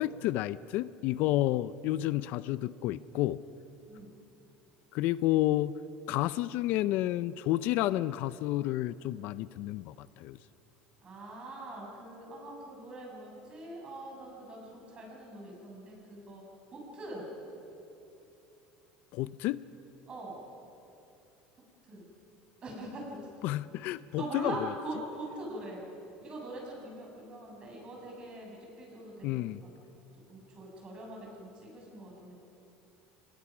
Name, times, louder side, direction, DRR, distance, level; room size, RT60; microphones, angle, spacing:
voice 1, 0.0-3.4 4.9-5.7 6.1-10.4 19.1-19.6 23.4-24.5 29.2-29.6, left 15 dB, 60° left, 16 dB, 0.5 m, -30 dB
voice 2, 11.0-16.4 16.7-17.3 20.1-20.3 21.8-22.1 22.6-23.2 24.1-25.8 26.2-29.7 30.3-32.3, right 1 dB, 30° right, -1 dB, 6.9 m, -42 dB
25.5 x 20.0 x 6.1 m, 2.9 s
cardioid pair, 150°, 3 cm